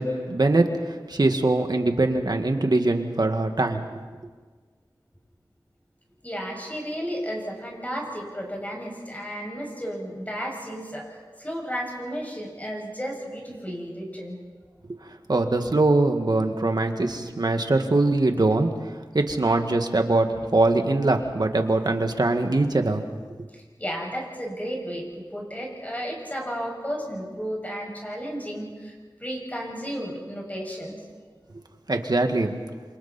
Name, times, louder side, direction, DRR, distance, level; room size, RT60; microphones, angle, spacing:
voice 1, 0.0-4.0 14.9-15.0 15.3-18.7 19.1-23.0 31.9-32.6, right 2 dB, 60° right, 5 dB, 2.0 m, -22 dB
voice 2, 6.2-11.1 11.4-14.4 23.5-28.9 29.2-31.0, equal, 20° left, -1 dB, 7.3 m, -33 dB
28.0 x 26.5 x 4.4 m, 1.4 s
wide cardioid pair, 55°, 8 cm